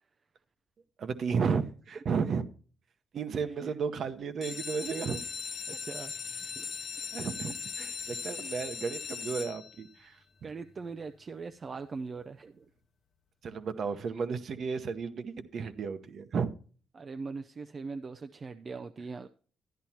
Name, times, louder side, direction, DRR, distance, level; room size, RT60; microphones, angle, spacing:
voice 1, 1.0-2.4 3.1-5.2 5.7-5.8 7.1-10.2 13.4-16.5, right 5 dB, 55° right, 0.9 m, -33 dB
sound 1, 4.3-10.0 10.6-11.1 11.5-11.6 11.9-12.0 12.4-12.5, left 6 dB, 50° left, 0.8 m, -39 dB
voice 2, 5.7-6.7 10.4-12.6 16.9-19.3, right 4 dB, 40° right, 0.5 m, -41 dB
12.5 x 10.5 x 2.9 m
cardioid pair, 90°, 0 cm